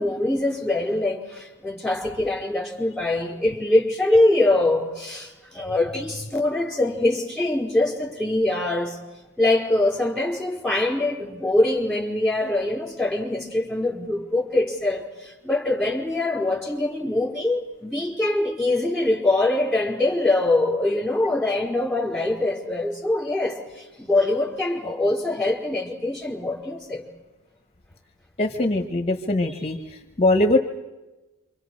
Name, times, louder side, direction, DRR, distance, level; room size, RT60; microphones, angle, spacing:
voice 1, 0.0-9.0 9.4-27.0, left 2 dB, ahead, 5.2 m, -23 dB
voice 2, 28.4-29.8 30.2-30.6, left 2 dB, 30° left, 1.5 m, -21 dB
28.0 x 25.5 x 6.5 m
head